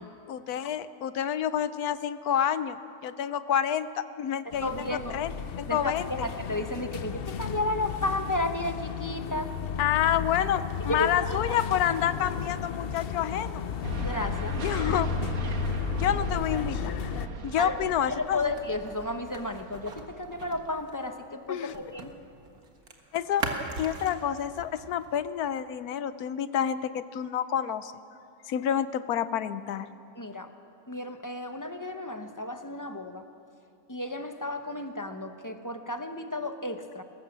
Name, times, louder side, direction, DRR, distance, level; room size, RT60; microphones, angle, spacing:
voice 1, 0.3-5.3 5.7-6.3 9.8-13.6 14.5-15.1 15.9-16.9 17.4-18.5 21.5-21.7 23.1-23.5 23.8-27.9 28.5-29.9, left 9 dB, 85° left, 13 dB, 1.3 m, -28 dB
sound 1, 4.5-17.3, left 7 dB, 55° left, 0.7 m, -34 dB
voice 2, 4.6-5.2 5.7-9.5 10.8-11.6 14.0-14.6 17.6-17.7 18.1-22.1 30.2-30.5 30.9-33.3 33.9-37.0, left 1 dB, 15° left, 7 dB, 0.8 m, -33 dB
sound 2, 13.8-20.8, right 3 dB, 70° right, 1.7 m, -38 dB
sound 3, 17.6-22.2 22.4-25.2, right 3 dB, 90° right, 2.1 m, -41 dB
21.0 x 17.5 x 7.4 m, 2.6 s
omnidirectional pair, 1.5 m